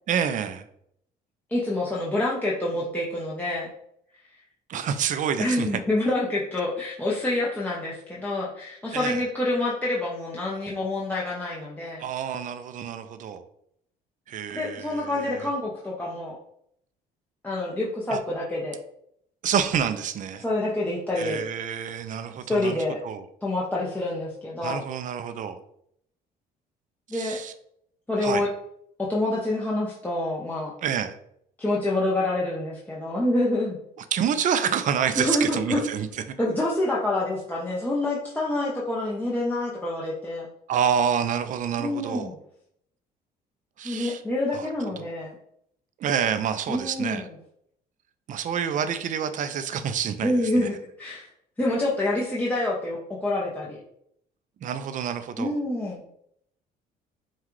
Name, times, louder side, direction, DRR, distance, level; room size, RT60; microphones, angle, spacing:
voice 1, 0.1-0.6 4.7-5.8 8.9-9.2 12.0-13.4 14.3-15.5 18.1-18.2 19.4-20.4 21.1-22.8 23.0-23.2 24.6-25.6 27.1-27.5 28.2-28.5 30.8-31.2 34.1-36.3 40.7-42.3 43.8-44.2 44.5-45.1 46.0-47.2 48.3-50.7 54.6-55.6, right 8 dB, 50° right, 10 dB, 0.5 m, -28 dB
voice 2, 1.5-3.7 5.4-12.0 14.5-16.4 17.4-18.8 20.4-21.4 22.5-23.0 23.4-24.8 27.1-27.4 28.1-28.5 29.0-30.7 31.6-33.8 35.2-35.8 36.4-40.5 41.8-42.3 43.8-45.3 46.7-47.3 50.2-51.3 51.6-53.8 55.4-56.0, left 1 dB, 10° left, -6 dB, 0.8 m, -27 dB
5.6 x 2.4 x 3.1 m, 0.71 s
cardioid pair, 110°, 17 cm